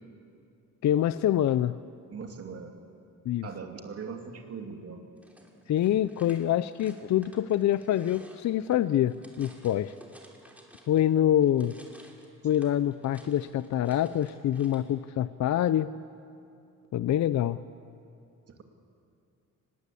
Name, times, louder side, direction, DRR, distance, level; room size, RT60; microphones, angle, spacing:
voice 1, 0.8-1.8 3.3-3.5 5.7-9.9 10.9-11.8 12.4-15.9 16.9-17.6, left 11 dB, 60° left, 14 dB, 0.5 m, -25 dB
voice 2, 2.1-2.8 3.4-5.0 18.5-18.6, right 5 dB, 45° right, 4 dB, 2.5 m, -40 dB
sound 1, 5.2-11.1 11.4-14.9, right 1 dB, 5° right, 3.0 m, -54 dB
25.5 x 21.0 x 8.5 m, 2.5 s
cardioid pair, 145°, 32 cm